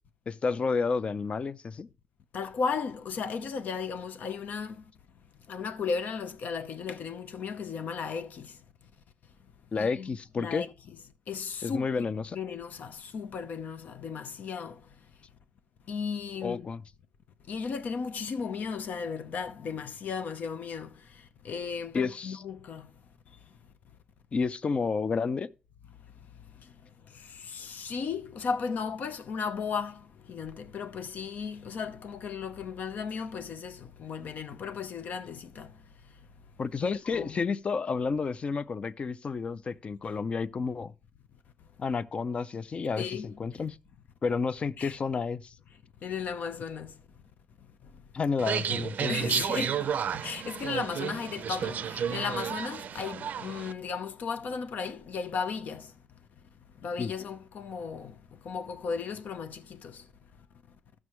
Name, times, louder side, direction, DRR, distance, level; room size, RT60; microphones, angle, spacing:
voice 1, 0.3-1.9 9.7-10.6 11.6-12.4 16.4-16.8 21.9-22.4 24.3-25.5 36.6-40.9 41.8-43.8 44.2-45.5 48.1-49.4 57.0-57.1, left 5 dB, 40° left, 0.5 m, -31 dB
voice 2, 2.3-4.8 5.5-8.5 9.7-10.1 10.4-11.0 11.3-14.8 15.9-16.7 17.5-20.9 21.4-22.9 27.1-30.0 30.3-35.7 36.8-37.4 43.0-43.4 44.8-45.0 46.0-46.9 49.1-55.9 56.8-58.2 58.4-60.0, left 5 dB, 75° left, 0.8 m, -35 dB
sound 1, 48.4-53.7, right 8 dB, 70° right, 0.4 m, -32 dB
14.5 x 6.1 x 3.1 m
cardioid pair, 120°, 3 cm